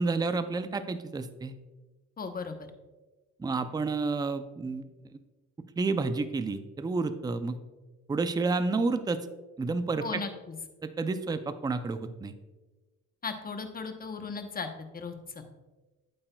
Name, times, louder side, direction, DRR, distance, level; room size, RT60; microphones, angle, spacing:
voice 1, 0.0-1.5 3.4-4.8 5.1-5.2 5.8-7.6 8.1-9.2 9.6-10.2 10.8-12.3, right 3 dB, 15° right, 11 dB, 0.4 m, -30 dB
voice 2, 2.2-2.6 10.0-10.5 13.2-15.4, left 4 dB, 30° left, 7 dB, 0.9 m, -37 dB
8.8 x 7.6 x 2.3 m, 1.2 s
cardioid pair, 90°, 30 cm